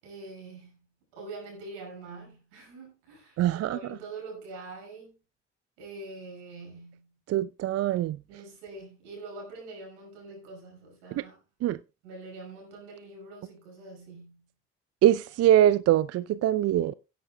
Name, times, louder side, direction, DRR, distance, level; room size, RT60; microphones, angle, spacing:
voice 1, 0.0-0.9 1.1-5.1 5.8-7.1 8.3-11.3 12.0-14.5, right 3 dB, 75° right, 6.0 m, -44 dB
voice 2, 3.4-3.8 7.3-8.2 11.2-11.3 11.6-11.8 15.0-16.9, right 12 dB, 45° right, 0.5 m, -23 dB
17.0 x 10.5 x 2.2 m
hypercardioid pair, 45°, 35 cm